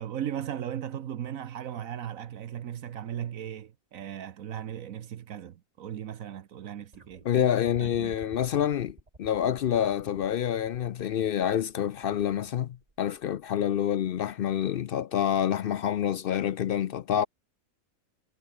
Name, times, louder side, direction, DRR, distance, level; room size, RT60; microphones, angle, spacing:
voice 1, 0.0-7.2 7.8-8.1, right 10 dB, 75° right, 1.3 m, -37 dB
sound 1, 6.9-14.1 15.2-15.3, right 2 dB, 25° right, 2.2 m, -53 dB
voice 2, 7.2-17.3, left 10 dB, 70° left, 0.5 m, -27 dB
omnidirectional pair, 1.5 m